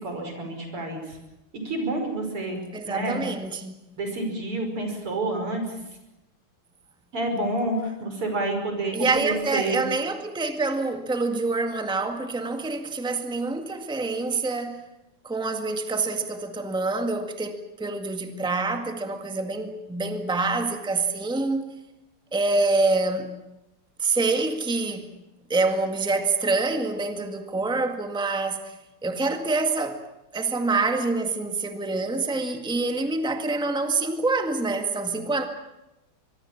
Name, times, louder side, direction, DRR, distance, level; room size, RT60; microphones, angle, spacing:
voice 1, 0.0-1.2 1.6-2.6 2.8-3.2 4.0-5.8 7.1-9.0 9.2-9.9, right 2 dB, 85° right, 6.2 m, -28 dB
voice 2, 2.7-3.7 8.9-14.9 15.2-21.7 22.3-23.3 24.0-25.1 25.5-28.7 29.0-30.0 30.3-35.4, right 3 dB, ahead, 1.7 m, -26 dB
24.5 x 22.5 x 7.4 m
omnidirectional pair, 2.4 m